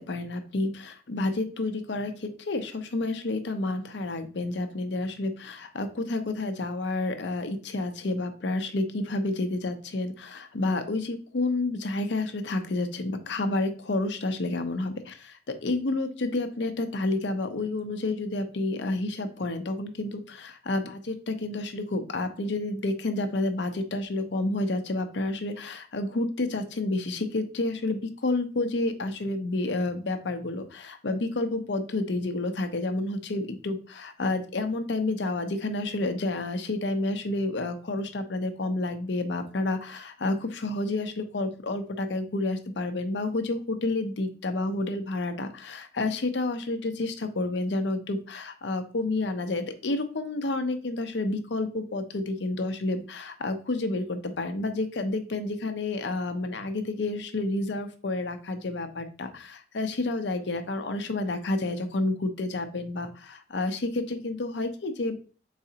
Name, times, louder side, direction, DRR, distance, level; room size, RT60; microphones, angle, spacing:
voice 1, 0.1-65.2, left 2 dB, 75° left, 8 dB, 0.6 m, -30 dB
4.7 x 4.0 x 2.8 m, 0.39 s
head